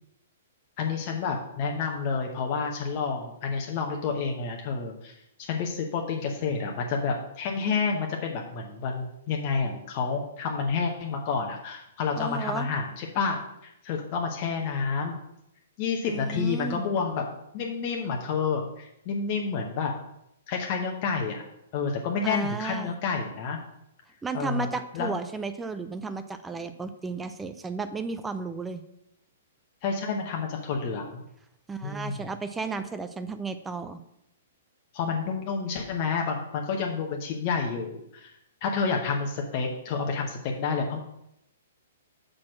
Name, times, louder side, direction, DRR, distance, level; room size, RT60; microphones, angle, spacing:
voice 1, 0.8-15.2 15.8-17.3 17.5-19.9 20.5-21.4 21.7-23.6 24.3-24.7 24.9-25.1 29.8-31.2 31.8-32.3 34.9-38.3 38.6-41.0, left 5 dB, 40° left, 1 dB, 1.0 m, -29 dB
voice 2, 12.2-12.7 16.1-16.9 22.2-22.9 24.2-28.8 31.7-34.0, right 4 dB, 10° right, 9 dB, 0.5 m, -33 dB
6.4 x 4.2 x 6.3 m, 0.80 s
figure-of-eight pair, 115°, 0 cm